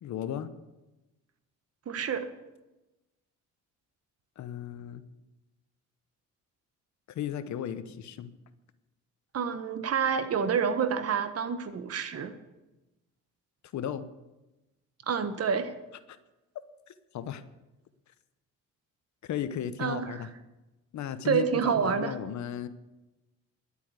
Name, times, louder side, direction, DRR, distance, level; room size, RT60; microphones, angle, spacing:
voice 1, 0.0-0.5 4.4-5.0 7.1-8.3 13.7-14.1 16.9-17.4 19.2-20.3 20.9-22.7, left 9 dB, 70° left, 12 dB, 1.0 m, -35 dB
voice 2, 1.9-2.3 9.3-12.4 15.1-15.7 19.8-20.2 21.2-22.2, right 6 dB, 55° right, 10 dB, 1.3 m, -28 dB
11.5 x 8.3 x 8.1 m, 1.0 s
cardioid pair, 90°, 30 cm